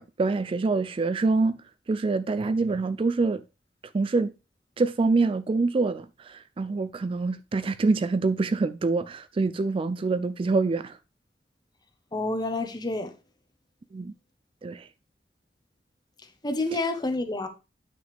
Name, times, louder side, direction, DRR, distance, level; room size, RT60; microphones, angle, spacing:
voice 1, 0.0-1.6 1.9-3.4 3.9-4.3 4.8-11.0 13.9-14.1 14.6-14.9, right 3 dB, 30° right, 0.3 m, -25 dB
voice 2, 12.1-13.1 16.4-17.5, left 2 dB, 25° left, 1.1 m, -28 dB
8.7 x 6.0 x 3.4 m
head